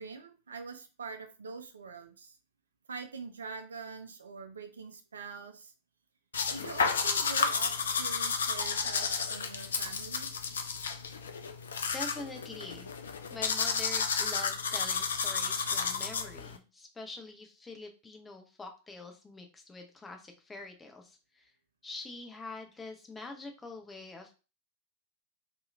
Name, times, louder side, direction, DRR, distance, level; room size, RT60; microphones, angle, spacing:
voice 1, 0.0-2.4 2.9-5.7 6.5-10.3, right 5 dB, 70° right, 7 dB, 0.5 m, -44 dB
sound 1, 6.3-16.6, left 5 dB, 65° left, 0.3 m, -32 dB
voice 2, 11.9-21.5 21.8-24.3, left 3 dB, 15° left, 3 dB, 0.7 m, -45 dB
2.8 x 2.8 x 2.4 m, 0.32 s
figure-of-eight pair, 90°, 0 cm